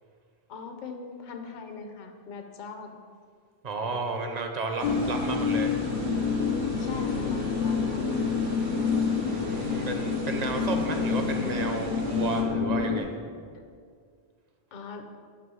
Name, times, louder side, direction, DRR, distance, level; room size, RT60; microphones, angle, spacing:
voice 1, 0.5-3.0 6.8-8.4 14.7-15.0, left 5 dB, 55° left, 5 dB, 0.7 m, -41 dB
voice 2, 3.6-5.7 9.2-13.1, right 3 dB, 45° right, 4 dB, 0.6 m, -32 dB
sound 1, 4.8-13.0, left 5 dB, 85° left, 0.9 m, -27 dB
sound 2, 4.8-12.4, right 2 dB, 80° right, 1.2 m, -45 dB
7.5 x 3.0 x 6.0 m, 2.1 s
omnidirectional pair, 1.1 m